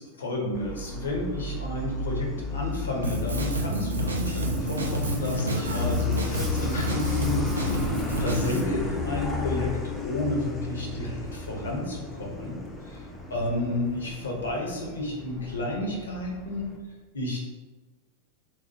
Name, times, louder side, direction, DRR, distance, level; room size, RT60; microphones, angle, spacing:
voice 1, 0.0-7.8 8.2-16.7 17.1-17.4, left 1 dB, 70° left, -1 dB, 0.7 m, -31 dB
Truck, 0.5-16.8, left 3 dB, 10° left, 0.4 m, -33 dB
Drum kit, 3.0-8.6, right 2 dB, 75° right, 0.4 m, -30 dB
2.9 x 2.1 x 2.8 m, 1.2 s
figure-of-eight pair, 90°, 0 cm